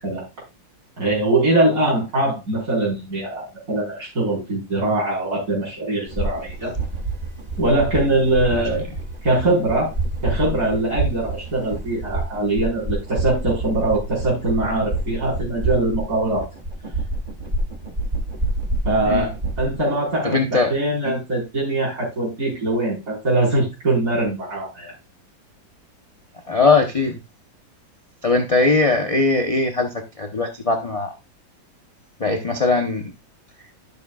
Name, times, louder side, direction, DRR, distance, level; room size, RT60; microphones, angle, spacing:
voice 1, 1.0-6.7 7.6-8.9 9.2-9.9 10.2-16.5 18.8-19.3 19.6-24.9, right 2 dB, 45° right, -6 dB, 4.8 m, -22 dB
sound 1, 6.1-19.8, right 2 dB, 20° right, 1.6 m, -28 dB
voice 2, 20.2-20.7 21.0-21.2 26.5-27.2 28.2-29.9 30.2-31.1 32.2-33.1, left 3 dB, 30° left, 3 dB, 0.7 m, -20 dB
12.5 x 6.8 x 2.3 m, 0.25 s
omnidirectional pair, 2.1 m